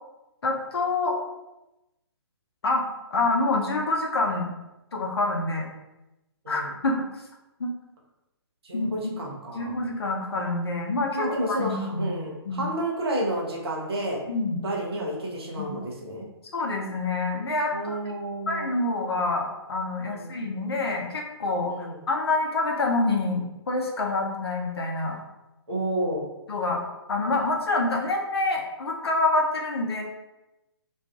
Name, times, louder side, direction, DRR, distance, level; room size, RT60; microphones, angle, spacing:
voice 1, 0.4-1.2 2.6-2.8 3.1-4.5 4.9-5.7 6.5-7.1 7.6-7.7 8.7-12.1 12.4-12.6 14.3-14.7 15.5-15.7 16.5-18.1 18.5-25.2 26.5-26.8 27.1-30.0, left 2 dB, 65° left, 0 dB, 0.5 m, -27 dB
voice 2, 8.6-9.8 11.1-14.2 14.6-16.3 17.7-18.7 20.0-20.4 21.7-22.0 25.7-26.2, right 1 dB, 65° right, -2 dB, 0.7 m, -30 dB
2.5 x 2.3 x 2.3 m, 0.97 s
figure-of-eight pair, 130°, 14 cm